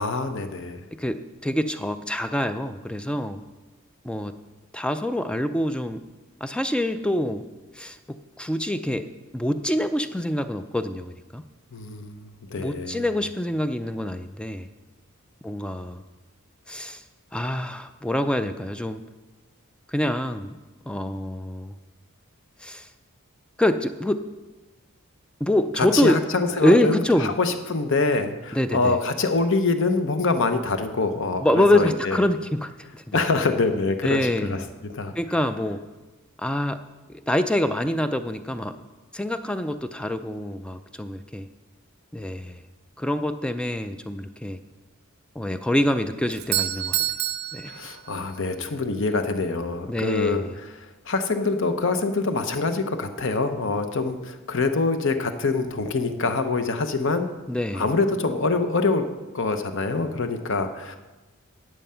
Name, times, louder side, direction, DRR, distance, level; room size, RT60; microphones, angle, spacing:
voice 1, 0.0-0.8 11.7-13.1 25.8-32.2 33.1-35.1 47.7-57.3 57.7-59.0 59.3-61.0, left 3 dB, 55° left, 8 dB, 0.9 m, -25 dB
voice 2, 1.0-3.4 4.0-4.3 4.7-6.0 6.4-7.4 7.7-9.1 9.3-11.4 12.6-14.7 15.4-16.0 16.7-17.0 17.3-19.0 19.9-20.6 20.9-21.8 22.6-22.9 23.6-24.3 25.4-26.2 26.6-27.3 28.5-29.0 31.4-32.7 33.1-33.2 34.0-34.6 35.2-35.8 36.4-36.8 37.1-38.8 39.1-41.5 42.1-42.6 43.0-44.6 45.4-47.0 47.5-47.7 49.9-50.5 57.5-57.9, left 1 dB, 5° left, 10 dB, 0.4 m, -25 dB
Doorbell, 46.3-48.5, right 12 dB, 45° right, 0.6 m, -28 dB
11.0 x 8.6 x 5.7 m, 1.2 s
head